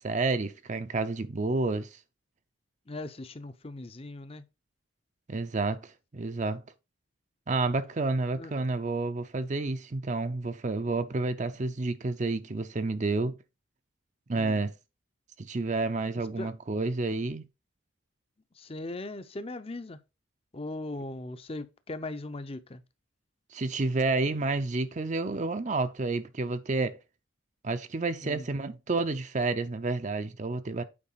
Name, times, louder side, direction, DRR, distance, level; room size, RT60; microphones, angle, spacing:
voice 1, 0.0-2.0 5.3-6.6 7.5-13.3 14.3-14.7 15.4-17.4 23.5-27.0 27.6-30.8, right 3 dB, 35° right, 0.5 m, -30 dB
voice 2, 2.9-4.4 8.3-8.5 14.3-14.6 16.4-16.5 18.6-20.0 20.5-22.8 28.2-28.5, left 2 dB, 30° left, 0.6 m, -39 dB
8.7 x 4.6 x 4.1 m
head